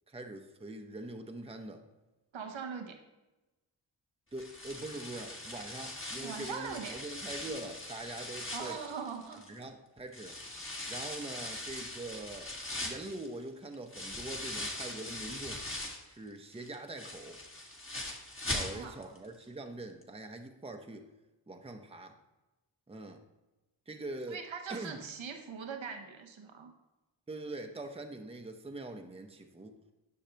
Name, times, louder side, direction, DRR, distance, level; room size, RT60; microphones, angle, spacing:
voice 1, 0.1-1.8 4.3-8.8 9.5-10.4 10.9-12.5 12.8-15.6 16.1-17.4 18.4-21.1 21.5-22.2 22.9-23.2 23.9-24.4 24.7-25.0 27.3-29.8, right 2 dB, 15° right, 5 dB, 0.7 m, -43 dB
voice 2, 2.3-3.0 6.2-7.0 8.5-9.5 18.5-19.0 24.3-26.7, right 6 dB, 90° right, 5 dB, 0.9 m, -41 dB
sound 1, 4.4-9.6 10.1-16.1 16.5-19.2 19.4-19.5 20.0-20.1, left 1 dB, 25° left, 1.4 m, -41 dB
10.0 x 6.4 x 2.9 m, 1.1 s
wide cardioid pair, 75°, 45 cm